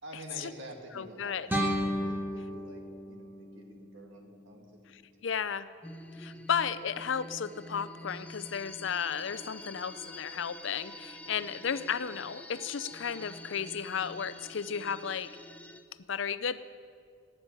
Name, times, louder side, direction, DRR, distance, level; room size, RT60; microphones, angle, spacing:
voice 1, 0.0-5.1 5.3-5.4 6.3-6.4, right 1 dB, 65° right, 2 dB, 1.9 m, -48 dB
voice 2, 0.9-1.5 4.9-5.7 6.2-15.3 16.1-16.6, left 7 dB, 65° left, 14 dB, 0.5 m, -34 dB
sound 1, 1.5-4.5, equal, 10° right, 1.7 m, -34 dB
sound 2, 5.8-15.8, left 1 dB, 5° left, 0.4 m, -47 dB
12.0 x 9.8 x 9.0 m, 2.1 s
head